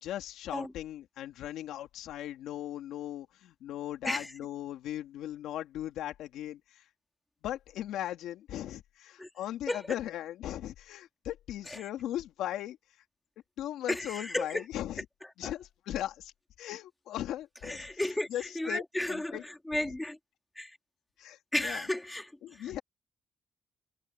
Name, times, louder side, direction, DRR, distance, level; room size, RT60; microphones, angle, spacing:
voice 1, 0.0-6.8 7.4-12.8 13.6-15.0 15.4-16.3 16.6-17.9 18.3-18.8 19.1-19.4 19.8-19.9 21.2-21.8 22.4-22.8, left 12 dB, 85° left, 3.0 m, -38 dB
voice 2, 13.9-14.6 15.4-15.5 17.6-18.3 18.5-20.2 20.6-20.8 21.5-22.7, left 1 dB, 10° left, 2.5 m, -34 dB
cardioid pair, 90°, 0 cm